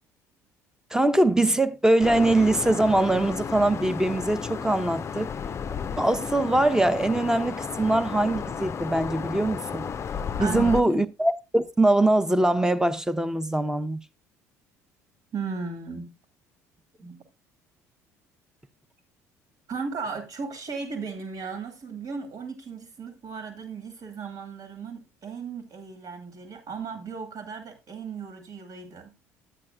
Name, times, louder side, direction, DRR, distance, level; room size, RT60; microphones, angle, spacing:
voice 1, 0.9-5.3 6.0-9.9 10.4-14.0, right 2 dB, 5° right, 0.8 m, -22 dB
sound 1, 2.0-10.8, left 6 dB, 35° left, 0.5 m, -33 dB
voice 2, 10.4-11.1 15.3-16.1 17.0-17.2 19.7-29.1, right 5 dB, 55° right, 2.0 m, -36 dB
11.0 x 8.8 x 2.3 m
hypercardioid pair, 60°, 8 cm